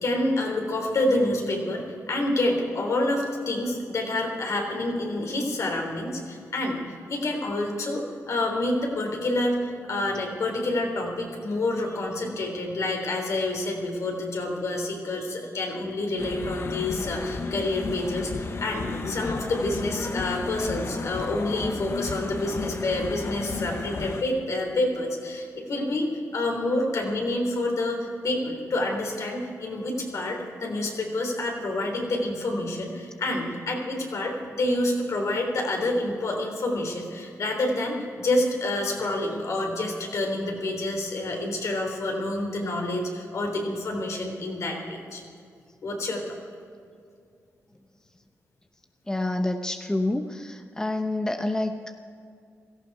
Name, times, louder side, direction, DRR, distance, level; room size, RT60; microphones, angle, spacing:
voice 1, 0.0-6.8 7.1-28.0 28.2-45.2 45.8-46.4, left 2 dB, 65° left, 1 dB, 3.6 m, -28 dB
sound 1, 16.2-24.2, left 3 dB, 45° left, 1.0 m, -33 dB
voice 2, 49.1-52.0, left 2 dB, 10° left, 6 dB, 0.8 m, -28 dB
17.0 x 14.5 x 4.8 m, 2.4 s
cardioid pair, 70°, 6 cm